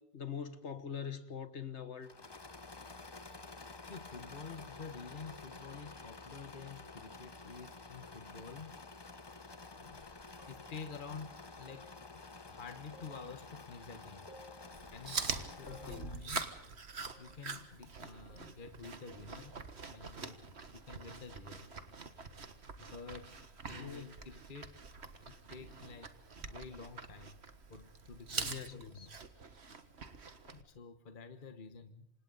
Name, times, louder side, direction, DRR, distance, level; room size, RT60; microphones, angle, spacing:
voice 1, 0.1-2.1 15.6-16.2 23.8-24.1 28.4-29.1, left 7 dB, 85° left, 1.7 m, -43 dB
Engine / Mechanisms, 2.0-16.3, left 3 dB, 25° left, 0.8 m, -51 dB
voice 2, 3.8-8.7 9.7-10.1 10.5-12.2 12.5-14.3 14.8-16.5 17.2-21.7 22.8-24.8 25.2-27.4 27.7-29.2 30.0-30.1 30.4-32.1, left 5 dB, 50° left, 1.4 m, -50 dB
sound 1, 10.4-10.9 11.7-12.3 12.9-13.6 13.9-14.0 14.3-15.1 15.7-16.3 17.1-17.6 18.3-18.8 20.3-21.2, equal, 55° right, 3.2 m, -59 dB
Chewing mastication, 14.7-30.6, right 4 dB, 70° right, 1.8 m, -45 dB
28.5 x 26.0 x 4.0 m
omnidirectional pair, 1.1 m